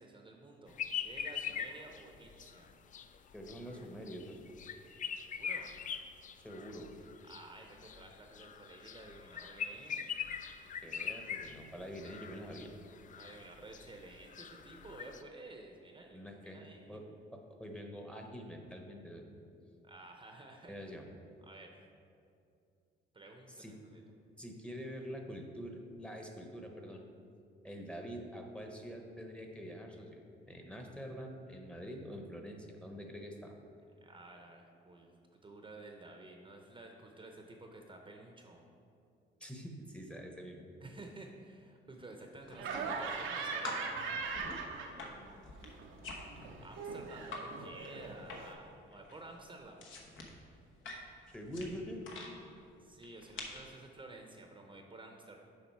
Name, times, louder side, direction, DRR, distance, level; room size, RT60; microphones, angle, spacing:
voice 1, 0.0-2.7 5.3-5.7 7.3-10.1 13.2-17.0 19.8-20.7 21.4-21.8 23.1-24.0 34.0-35.1 35.4-38.6 40.8-44.2 46.6-49.8 52.8-55.4, right 2 dB, 25° right, 2 dB, 0.7 m, -52 dB
sound 1, 0.7-15.2, left 7 dB, 40° left, 0.4 m, -43 dB
voice 2, 3.3-4.4 6.4-6.9 10.8-12.7 16.1-19.3 20.7-21.1 23.6-23.7 24.4-27.1 27.6-30.2 30.5-33.5 39.4-40.6 51.3-52.0, equal, 5° left, 2 dB, 0.9 m, -45 dB
sound 2, 42.4-43.3 43.6-47.5 47.8-48.7 48.9-52.3 53.0-53.7, left 3 dB, 75° left, 1.1 m, -47 dB
Laughter, 42.6-45.3 45.6-48.5, right 4 dB, 80° right, 0.7 m, -40 dB
7.2 x 4.9 x 4.6 m, 2.4 s
cardioid pair, 90°, 20 cm